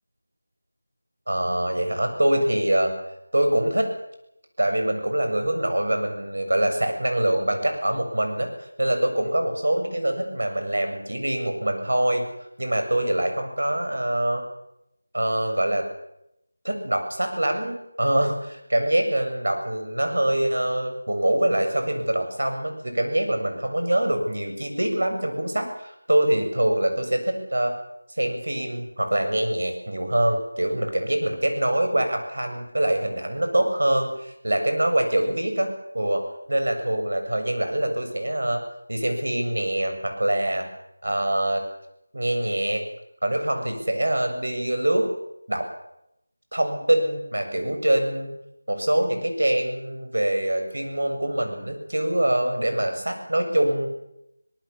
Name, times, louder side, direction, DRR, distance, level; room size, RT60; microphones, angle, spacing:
voice 1, 1.3-2.9 3.3-3.9 4.6-8.5 8.8-12.2 12.6-14.4 15.1-15.9 16.6-27.7 28.2-38.6 38.9-40.7 41.0-41.6 42.1-42.8 43.2-45.1 45.5-45.7 46.5-48.3 48.7-53.9, right 1 dB, 85° right, 5 dB, 7.4 m, -24 dB
24.5 x 19.0 x 7.3 m, 0.80 s
figure-of-eight pair, 180°, 0 cm